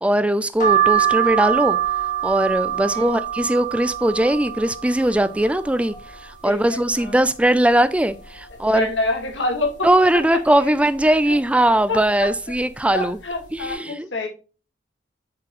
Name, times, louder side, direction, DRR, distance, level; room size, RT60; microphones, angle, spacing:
voice 1, 0.0-1.8 2.2-5.9 6.4-8.9 9.8-13.2 13.5-14.1, right 1 dB, 5° right, 0.4 m, -19 dB
sound 1, 0.6-6.3 6.7-7.5 7.9-8.0 8.2-9.3 9.8-10.1 10.9-11.2 12.0-12.3 12.5-12.7, right 10 dB, 45° left, 2.4 m, -24 dB
voice 2, 2.8-3.2 6.4-7.2 8.7-9.9 10.1-10.2 10.5-10.7 11.3-11.4 11.9-12.3 12.9-14.3, left 2 dB, 85° left, 1.9 m, -27 dB
7.1 x 4.8 x 3.0 m
head